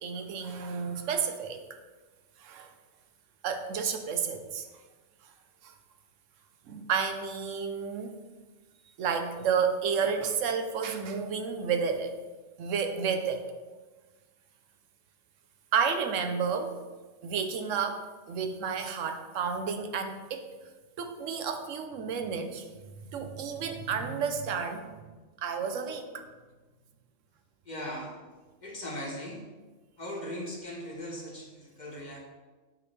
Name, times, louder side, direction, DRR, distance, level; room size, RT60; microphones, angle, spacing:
voice 1, 0.0-1.6 2.4-2.7 3.4-4.7 5.6-5.7 6.7-8.1 9.0-12.1 12.6-13.4 15.7-16.8 17.2-20.4 21.0-22.7 23.1-24.9 25.4-26.2, right 6 dB, 90° right, 7 dB, 1.1 m, -31 dB
voice 2, 27.6-28.1 28.6-29.4 30.0-32.2, equal, 40° left, -1 dB, 1.2 m, -39 dB
8.4 x 4.9 x 3.3 m, 1.3 s
omnidirectional pair, 1.3 m